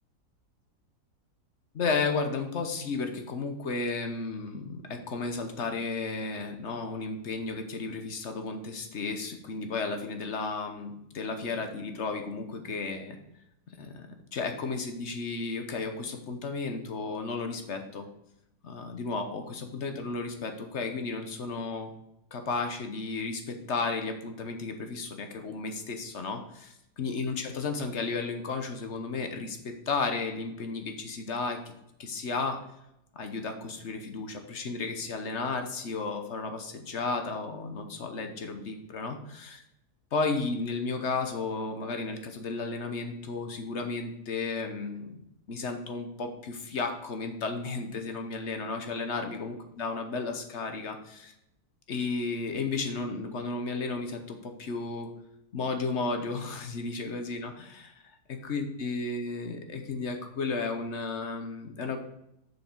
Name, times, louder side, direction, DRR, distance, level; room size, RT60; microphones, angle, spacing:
voice 1, 1.7-13.2 13.8-18.1 18.6-21.9 22.3-31.6 32.0-32.6 33.1-39.6 40.1-45.2 45.5-51.3 51.9-55.1 55.5-57.9 58.5-62.0, left 4 dB, 50° left, 6 dB, 1.2 m, -33 dB
7.0 x 6.4 x 4.5 m, 0.83 s
omnidirectional pair, 1.6 m